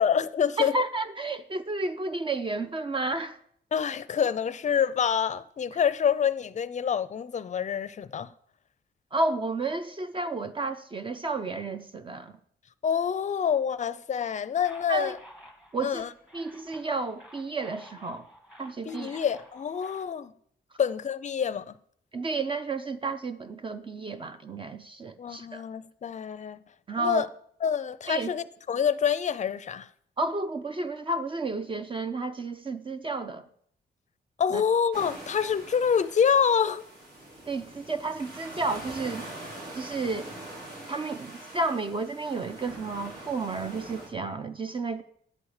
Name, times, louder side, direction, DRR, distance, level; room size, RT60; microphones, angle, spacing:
voice 1, 0.0-0.8 3.7-8.3 12.8-15.2 15.8-16.1 18.8-20.3 20.8-21.7 25.2-26.6 27.0-27.3 27.6-29.9 34.4-36.8, left 7 dB, 40° left, 0.5 m, -27 dB
voice 2, 0.6-3.4 9.1-12.3 14.9-15.1 15.7-16.0 16.3-18.2 18.6-19.2 22.1-25.6 26.9-27.2 28.1-28.3 30.2-33.4 34.5-34.6 37.5-39.2 39.8-40.3 40.9-45.0, right 3 dB, 30° right, 0.5 m, -31 dB
sound 1, 14.6-20.0, equal, 5° right, 1.6 m, -51 dB
sound 2, 34.9-44.1, right 1 dB, 65° right, 4.3 m, -43 dB
11.0 x 8.5 x 4.9 m
wide cardioid pair, 150°, 18 cm